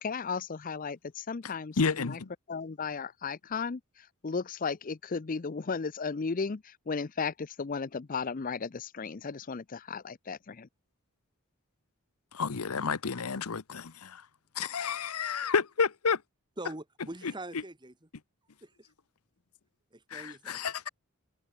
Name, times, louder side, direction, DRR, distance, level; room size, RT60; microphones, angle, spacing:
voice 1, 0.0-2.2 2.5-10.7, left 5 dB, 40° left, 0.5 m, -35 dB
voice 2, 1.8-2.3 12.3-14.2 14.5-16.2 20.1-20.9, left 5 dB, 85° left, 0.9 m, -30 dB
voice 3, 16.6-17.9 18.6-18.9 19.9-20.6, right 2 dB, 20° right, 1.7 m, -43 dB
head